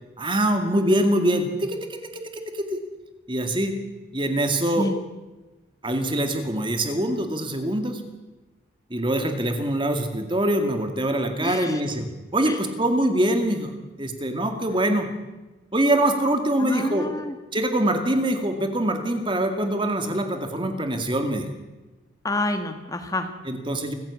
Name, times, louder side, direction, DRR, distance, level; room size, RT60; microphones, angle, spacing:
voice 1, 0.2-2.8 3.3-3.7 4.1-4.9 5.8-8.0 8.9-12.1 12.3-13.7 14.0-15.1 15.7-17.1 17.5-21.5 23.5-23.9, right 1 dB, 25° right, 6 dB, 2.2 m, -24 dB
voice 2, 11.4-11.8 12.4-12.6 16.6-17.3 22.2-23.3, left 1 dB, 15° left, 6 dB, 1.6 m, -28 dB
26.5 x 15.0 x 8.4 m, 1.2 s
head